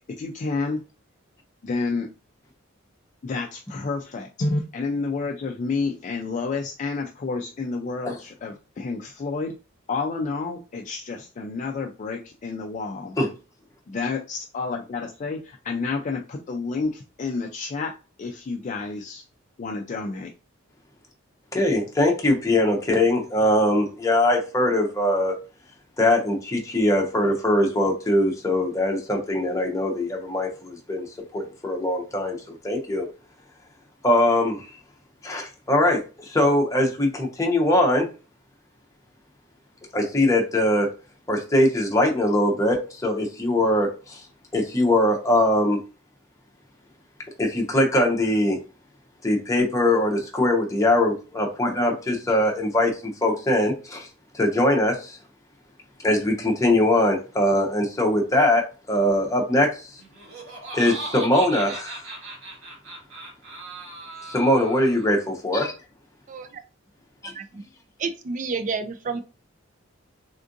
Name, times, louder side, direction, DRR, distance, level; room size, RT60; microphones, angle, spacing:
voice 1, 0.1-0.8 1.6-2.1 3.2-9.5 9.9-13.2 13.9-17.9 18.2-19.2 19.6-20.3, left 4 dB, 35° left, 2 dB, 0.3 m, -29 dB
voice 2, 21.5-25.3 26.0-32.4 32.6-33.1 34.0-34.7 35.2-38.1 39.9-40.9 41.3-44.2 44.5-45.8 47.4-48.6 49.2-52.9 53.2-54.1 54.3-55.2 56.0-58.6 58.9-59.9 60.7-62.0 64.2-65.7, left 1 dB, 15° left, 0 dB, 0.7 m, -21 dB
Laughter, 60.0-65.2, right 2 dB, 80° right, 1.3 m, -38 dB
voice 3, 68.0-69.2, right 4 dB, 40° right, 8 dB, 0.4 m, -30 dB
3.5 x 2.4 x 2.6 m, 0.33 s
head